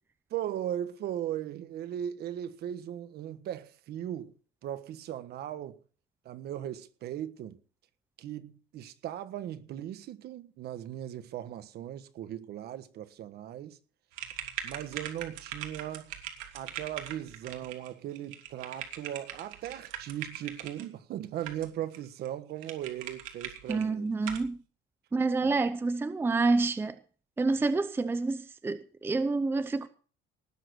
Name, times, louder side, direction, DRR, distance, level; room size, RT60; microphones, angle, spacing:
voice 1, 0.3-4.3 4.6-5.8 6.2-7.6 8.2-13.8 14.6-16.1 16.5-24.1 25.4-25.5, right 11 dB, 55° right, 1.4 m, -38 dB
sound 1, 14.1-20.8 21.4-22.0 22.2-22.3 22.6-23.8 24.2-24.5, right 10 dB, 85° right, 3.0 m, -41 dB
voice 2, 23.7-24.6 25.1-26.9 27.4-29.9, right 3 dB, 10° right, 0.7 m, -28 dB
19.0 x 7.7 x 6.1 m
cardioid pair, 180°, 20 cm